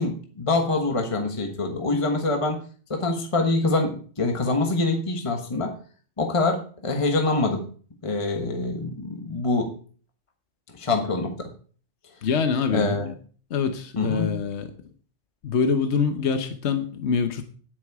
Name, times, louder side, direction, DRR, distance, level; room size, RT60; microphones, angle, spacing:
voice 1, 0.0-2.6 2.9-5.8 6.2-7.7 8.0-9.7 10.7-11.5 12.7-13.1 13.9-14.4, left 3 dB, 25° left, 4 dB, 1.3 m, -25 dB
voice 2, 12.2-13.1 13.5-14.7 15.4-17.4, left 6 dB, 70° left, 8 dB, 1.2 m, -25 dB
9.9 x 9.0 x 4.8 m, 0.43 s
omnidirectional pair, 1.2 m